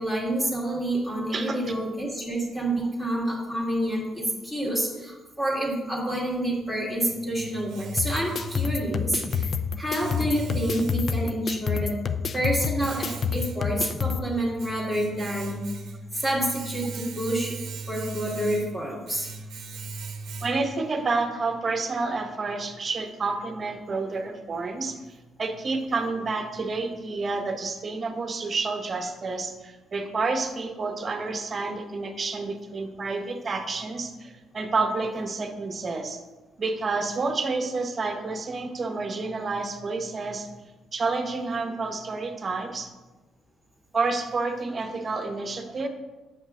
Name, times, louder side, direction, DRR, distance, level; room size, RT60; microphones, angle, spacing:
voice 1, 0.0-11.9 12.3-15.6 16.1-17.5 17.9-19.3, right 1 dB, 15° left, -5 dB, 2.1 m, -28 dB
Domestic sounds home sounds, 6.5-20.9, right 3 dB, 70° right, 0.8 m, -39 dB
sound 1, 8.0-14.2, left 6 dB, 50° left, 0.4 m, -28 dB
voice 2, 20.4-36.2 36.6-40.5 40.9-42.9 43.9-45.9, right 3 dB, 40° right, 6 dB, 0.9 m, -29 dB
7.3 x 5.3 x 3.7 m, 1.1 s
cardioid pair, 90°, 0 cm